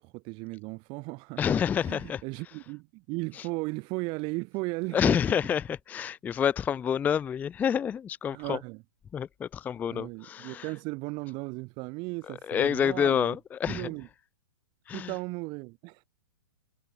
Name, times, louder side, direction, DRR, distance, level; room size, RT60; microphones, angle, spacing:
voice 1, 0.0-5.4 8.3-8.8 9.9-13.4 13.7-14.1 14.9-16.0, right 27 dB, 35° right, 1.6 m, -36 dB
voice 2, 1.4-2.2 4.9-8.6 9.1-10.6 12.5-13.9 14.9-15.1, left 8 dB, 10° left, 0.4 m, -28 dB
hypercardioid pair, 120°, 13 cm